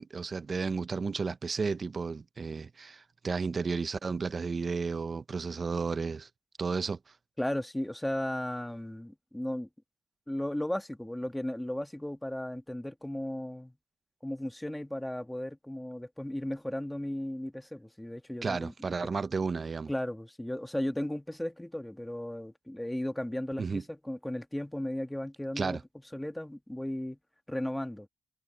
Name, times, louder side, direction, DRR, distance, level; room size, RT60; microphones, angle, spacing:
voice 1, 0.0-6.3 6.6-7.0 18.4-19.9 23.6-23.8 25.6-25.8, right 4 dB, 35° right, 0.5 m, -33 dB
voice 2, 7.4-9.7 10.3-13.7 14.2-18.7 19.9-25.8 26.1-27.2 27.5-28.1, left 1 dB, 5° left, 1.8 m, -35 dB
cardioid pair, 110°, 0 cm